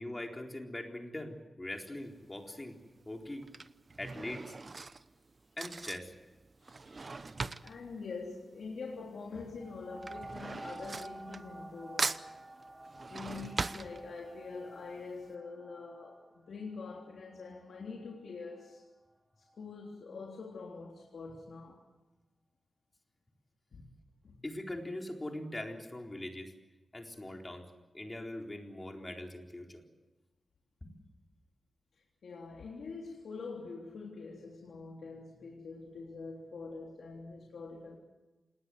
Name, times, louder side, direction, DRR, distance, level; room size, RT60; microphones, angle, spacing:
voice 1, 0.0-2.8 3.1-3.4 4.0-4.6 5.6-6.1 13.1-13.2 24.4-26.5 26.9-27.7 27.9-29.8 30.8-31.0, left 1 dB, 20° left, 4.1 m, -41 dB
Drawer open or close / Cutlery silverware, 2.0-2.4 3.2-9.1 9.4-11.7 12.0-14.5 14.9-15.0 15.2-15.3, right 3 dB, 40° right, 0.9 m, -40 dB
voice 2, 6.6-12.1 13.1-18.8 19.4-21.8 23.7-23.9 24.2-24.4 32.2-38.0, left 4 dB, 80° left, 3.4 m, -45 dB
sound 1, 9.6-18.9 19.5-19.6, right 1 dB, 10° right, 0.9 m, -51 dB
27.0 x 20.0 x 7.9 m
wide cardioid pair, 115°, 0 cm